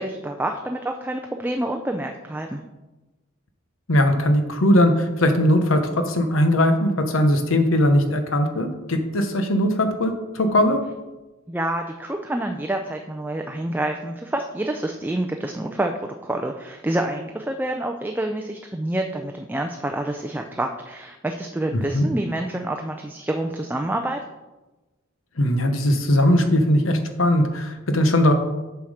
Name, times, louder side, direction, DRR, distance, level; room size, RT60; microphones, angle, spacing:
voice 1, 0.0-2.6 11.5-24.2, right 1 dB, 10° right, 3 dB, 0.4 m, -27 dB
voice 2, 3.9-10.8 21.7-22.1 25.4-28.3, left 1 dB, 85° left, 7 dB, 1.0 m, -19 dB
7.3 x 5.8 x 5.0 m, 1.1 s
head